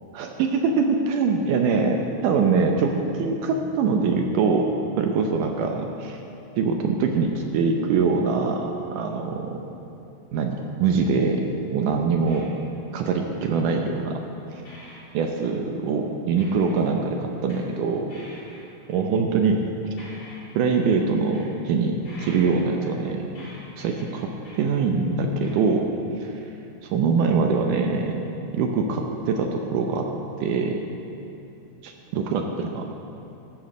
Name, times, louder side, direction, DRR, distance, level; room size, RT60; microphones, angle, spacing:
voice 1, 0.2-4.7 5.0-6.2 6.6-9.6 10.3-11.4 11.7-12.5 12.9-14.2 15.1-18.1 18.9-19.6 20.6-23.3 23.8-24.3 24.6-25.9 26.2-26.3 26.8-28.2 28.5-30.1 30.4-30.8 31.8-32.9, right 5 dB, 80° right, 3 dB, 1.9 m, -23 dB
sound 1, 12.3-12.7 13.5-14.0 14.3-14.4 14.6-15.0 15.4-15.7 16.4-16.9 17.3-17.7 18.1-18.6 19.7-19.8 20.0-21.5 22.0-24.6 25.0-25.1 25.4-25.5, equal, 50° left, 5.1 m, -46 dB
13.5 x 8.8 x 6.6 m, 2.7 s
omnidirectional pair, 4.6 m